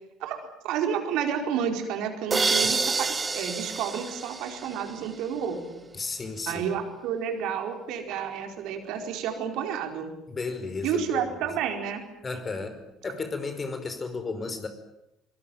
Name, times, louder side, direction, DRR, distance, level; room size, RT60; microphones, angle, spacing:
voice 1, 0.6-5.8 6.5-10.1 10.8-12.0, right 8 dB, 65° right, 4 dB, 4.6 m, -30 dB
sound 1, 2.3-5.1, right 4 dB, 25° right, 0.9 m, -28 dB
voice 2, 5.9-6.6 10.3-11.5 12.2-14.7, left 4 dB, 30° left, 9 dB, 5.1 m, -34 dB
24.0 x 22.0 x 9.2 m, 0.85 s
hypercardioid pair, 60°, 0 cm